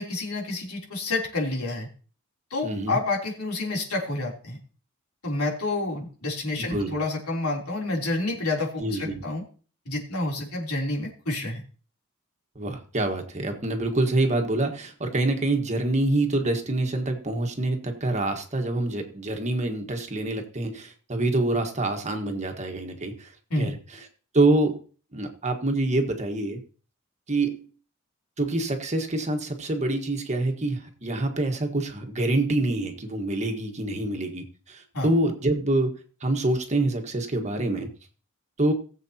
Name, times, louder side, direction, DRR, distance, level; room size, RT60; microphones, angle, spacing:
voice 1, 0.0-1.9 2.5-4.6 5.2-9.4 9.8-11.6 23.5-23.7 34.9-35.1, left 2 dB, 85° left, -1 dB, 3.4 m, -29 dB
voice 2, 2.6-3.0 6.6-6.9 8.8-9.2 12.5-23.3 23.6-23.8 24.3-24.8 25.1-26.6 27.3-27.7 28.4-37.9 38.6-38.7, right 2 dB, 30° right, 4 dB, 1.5 m, -26 dB
19.5 x 7.7 x 2.9 m, 0.40 s
head